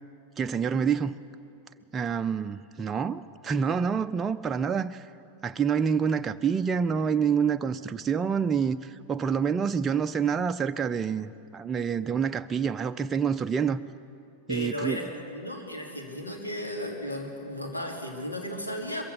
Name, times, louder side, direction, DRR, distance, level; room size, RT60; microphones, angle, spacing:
voice 1, 0.4-1.1 1.9-5.1 5.4-13.8 14.5-15.0, right 6 dB, 20° right, 0.4 m, -27 dB
voice 2, 14.5-19.0, equal, 80° left, 2.9 m, -35 dB
22.0 x 15.0 x 8.2 m
figure-of-eight pair, 90°, 0 cm